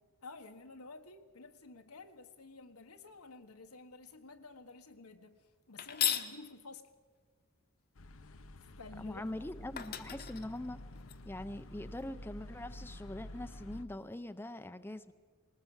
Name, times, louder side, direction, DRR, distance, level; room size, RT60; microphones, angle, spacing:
voice 1, 0.2-5.4 5.7-6.9 8.6-9.2, left 3 dB, 90° left, 1.5 m, -52 dB
sound 1, 5.8-6.3 9.3-9.4 9.8-11.1, left 10 dB, 45° left, 1.1 m, -35 dB
sound 2, 8.0-13.8, left 1 dB, 65° left, 0.8 m, -50 dB
voice 2, 9.0-10.8 11.2-15.1, left 1 dB, 10° left, 0.6 m, -43 dB
20.0 x 19.5 x 7.3 m
head